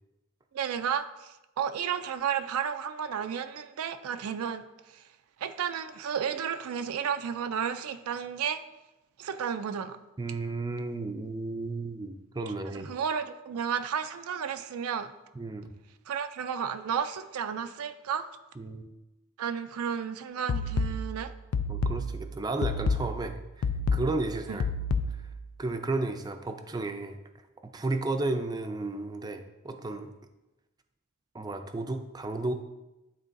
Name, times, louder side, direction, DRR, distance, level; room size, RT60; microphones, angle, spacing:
voice 1, 0.5-5.1 5.4-8.6 9.2-10.0 12.7-15.1 16.1-18.3 19.4-21.3 24.5-24.6, right 7 dB, 90° right, 9 dB, 0.4 m, -32 dB
voice 2, 10.2-12.9 15.4-15.7 18.6-18.9 21.7-24.7 25.6-27.2 27.6-30.1 31.3-32.5, right 2 dB, 20° right, 7 dB, 0.4 m, -33 dB
sound 1, 20.5-25.5, left 3 dB, 80° left, 0.4 m, -30 dB
10.5 x 3.8 x 2.6 m, 0.99 s
head